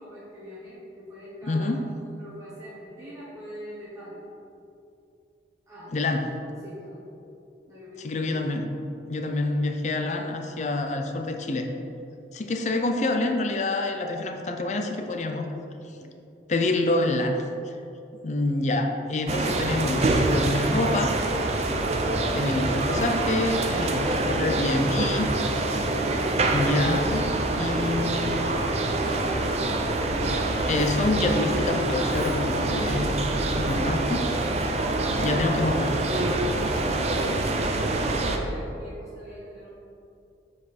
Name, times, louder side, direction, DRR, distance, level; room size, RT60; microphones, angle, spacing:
voice 1, 0.0-1.8 2.2-4.3 5.7-5.9 6.2-6.3 6.6-7.1 7.7-8.2 15.9-16.1 27.6-30.2 33.6-34.2 37.4-39.7, equal, 15° right, -10 dB, 1.2 m, -42 dB
voice 2, 1.5-1.8 5.9-6.2 8.0-8.7 9.1-11.7 12.3-15.5 16.5-17.4 17.7-17.8 18.2-21.3 22.3-25.3 25.7-25.8 26.5-28.3 30.7-33.1 33.5-34.0 35.2-35.9, left 2 dB, 40° left, 5 dB, 0.5 m, -27 dB
sound 1, 19.3-38.4, right 2 dB, 35° right, 0.5 m, -25 dB
6.8 x 4.8 x 4.2 m, 2.7 s
head